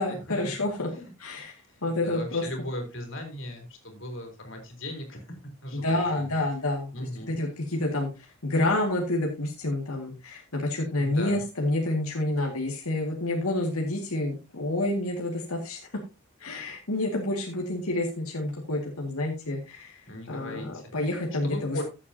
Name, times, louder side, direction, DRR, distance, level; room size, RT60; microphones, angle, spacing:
voice 1, 0.0-0.9 1.2-2.4 5.7-15.8 16.4-21.8, left 2 dB, 85° left, -1 dB, 2.1 m, -29 dB
voice 2, 1.7-5.4 5.6-6.4 6.9-7.3 11.0-11.4 20.1-21.1 21.4-21.8, left 1 dB, 60° left, 3 dB, 3.8 m, -38 dB
14.0 x 8.3 x 2.8 m, 0.28 s
head